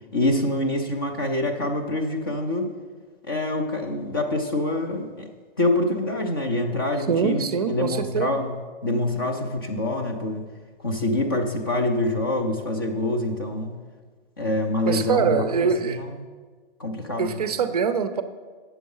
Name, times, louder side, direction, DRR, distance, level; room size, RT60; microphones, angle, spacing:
voice 1, 0.1-2.7 3.3-5.3 5.6-8.5 8.8-10.4 10.8-13.7 14.4-16.2 16.8-17.4, left 1 dB, 25° left, 3 dB, 0.5 m, -25 dB
voice 2, 7.1-8.3 14.9-16.0 17.2-18.2, right 6 dB, 40° right, 10 dB, 0.5 m, -23 dB
8.7 x 7.0 x 5.4 m, 1.5 s
hypercardioid pair, 180°, 29 cm